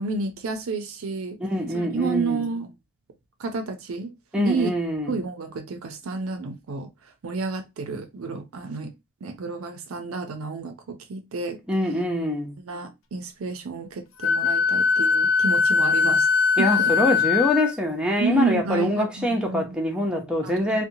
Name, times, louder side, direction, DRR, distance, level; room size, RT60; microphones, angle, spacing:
voice 1, 0.0-1.4 1.7-2.7 3.4-4.1 4.4-4.7 5.1-6.9 7.2-8.9 9.2-11.6 12.6-16.3 16.6-16.9 18.2-19.8 20.4-20.6, right 4 dB, 75° right, 0.5 m, -30 dB
voice 2, 1.4-2.4 4.3-5.1 11.7-12.5 16.6-20.8, equal, 5° right, 0.6 m, -24 dB
Wind instrument woodwind instrument, 14.2-17.7, left 5 dB, 65° left, 0.5 m, -21 dB
2.8 x 2.2 x 2.6 m
head